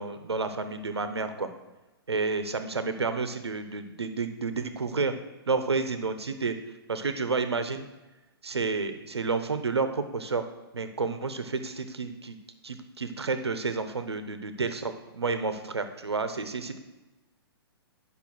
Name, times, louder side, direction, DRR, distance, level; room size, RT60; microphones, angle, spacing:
voice 1, 0.0-1.5 2.1-5.1 5.5-6.5 6.9-7.9 8.4-10.5 10.7-12.4 12.6-16.8, right 4 dB, 85° right, 9 dB, 0.9 m, -30 dB
10.5 x 5.6 x 6.2 m, 1.1 s
hypercardioid pair, 120°, 13 cm